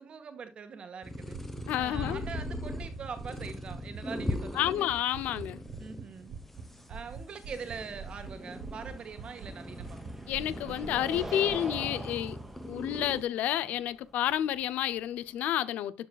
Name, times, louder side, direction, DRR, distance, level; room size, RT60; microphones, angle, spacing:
voice 1, 0.0-1.4 1.8-4.9 5.8-6.4 6.9-10.0, right 6 dB, 45° right, 1.7 m, -43 dB
sound 1, 1.0-13.2, left 1 dB, 10° left, 1.2 m, -40 dB
sound 2, 1.3-6.0 6.3-6.6 6.9-9.5 9.8-11.8, right 6 dB, 70° right, 1.2 m, -43 dB
voice 2, 1.7-2.2 4.6-5.6 10.3-12.4 12.7-15.9, left 12 dB, 75° left, 0.6 m, -30 dB
sound 3, 6.5-15.4, right 1 dB, 10° right, 1.6 m, -45 dB
13.0 x 4.7 x 2.4 m
cardioid pair, 100°, 3 cm